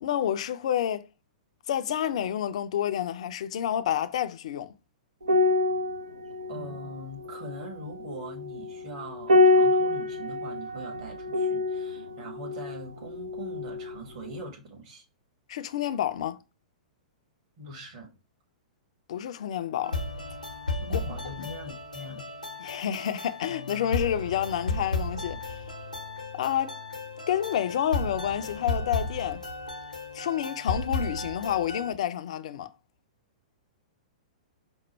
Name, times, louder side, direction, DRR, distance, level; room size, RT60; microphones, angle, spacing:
voice 1, 0.0-1.0 1.7-4.7 15.5-16.4 19.1-20.0 20.9-21.0 21.4-21.5 22.6-25.6 26.4-26.8 27.3-29.4 30.1-32.7, left 10 dB, 55° left, 0.4 m, -29 dB
sound 1, 5.2-14.0 14.2-14.5, left 2 dB, 75° right, 0.6 m, -26 dB
voice 2, 6.5-15.0 17.6-18.1 20.8-22.3, right 1 dB, 45° right, 1.6 m, -42 dB
sound 2, 19.8-31.9, left 3 dB, 90° left, 0.7 m, -34 dB
5.2 x 2.1 x 3.1 m
figure-of-eight pair, 105°, 4 cm